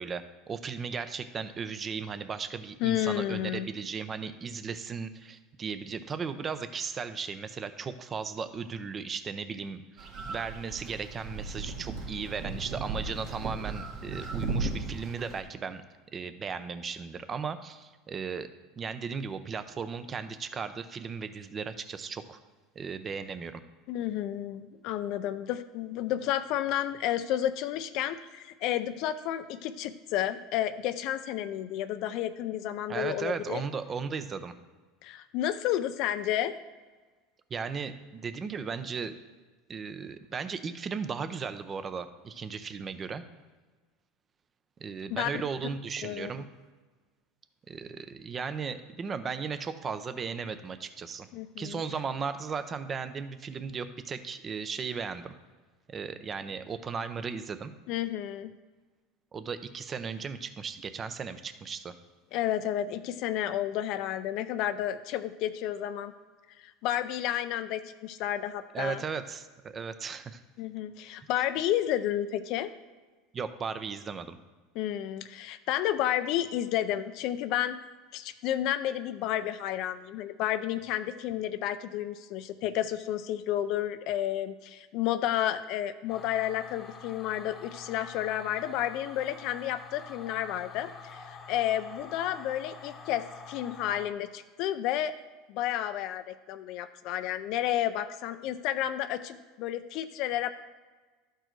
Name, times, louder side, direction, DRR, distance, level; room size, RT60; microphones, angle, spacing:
voice 1, 0.0-15.8 16.1-18.5 18.8-22.4 22.8-23.6 32.9-34.5 37.5-39.1 39.7-43.2 44.8-46.4 47.7-51.3 51.6-55.3 55.9-57.7 59.3-61.9 68.7-70.4 73.3-74.4, right 5 dB, 25° right, 11 dB, 0.5 m, -36 dB
voice 2, 2.8-3.7 23.9-33.6 35.0-36.5 45.1-45.3 46.0-46.3 51.3-51.8 57.9-58.5 62.3-66.1 66.6-69.0 70.6-72.7 74.8-77.8 78.1-95.1 95.5-100.5, left 12 dB, 60° left, 10 dB, 0.4 m, -31 dB
sound 1, 10.0-15.4, right 3 dB, 55° right, 1.8 m, -36 dB
sound 2, 86.1-94.1, left 5 dB, 25° left, 0.9 m, -47 dB
12.0 x 4.5 x 4.5 m, 1.3 s
supercardioid pair, 125°, 0 cm